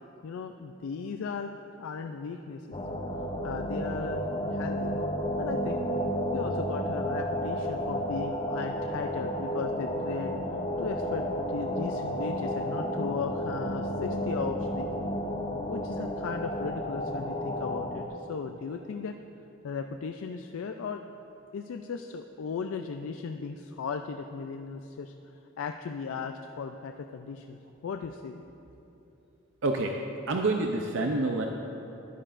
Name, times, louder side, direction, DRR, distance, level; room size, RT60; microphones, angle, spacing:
voice 1, 0.2-2.7 3.4-4.2 4.5-5.0 5.4-5.8 6.3-10.3 10.8-14.9 15.7-19.2 19.6-21.0 21.5-28.4, left 5 dB, 75° left, 6 dB, 0.3 m, -37 dB
sound 1, 2.7-18.1, equal, 25° left, 0.5 m, -32 dB
voice 2, 29.6-29.9 30.3-31.5, right 2 dB, 60° right, 2 dB, 0.5 m, -27 dB
13.5 x 11.0 x 2.5 m, 2.9 s
head